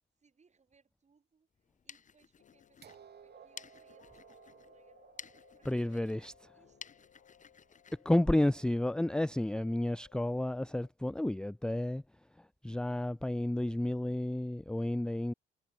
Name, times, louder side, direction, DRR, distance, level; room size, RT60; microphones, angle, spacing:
voice 1, 0.2-5.1 5.5-7.1, right 5 dB, 35° right, 6.6 m, -70 dB
sound 1, 1.6-9.1, left 7 dB, 40° left, 1.2 m, -55 dB
sound 2, 2.4-10.9, left 10 dB, 60° left, 1.9 m, -65 dB
sound 3, 2.8-8.7 9.8-9.9, right 8 dB, 55° right, 2.5 m, -60 dB
voice 2, 5.6-6.5 8.0-12.0 12.4-15.3, left 1 dB, 5° left, 0.5 m, -31 dB
cardioid pair, 90°, 20 cm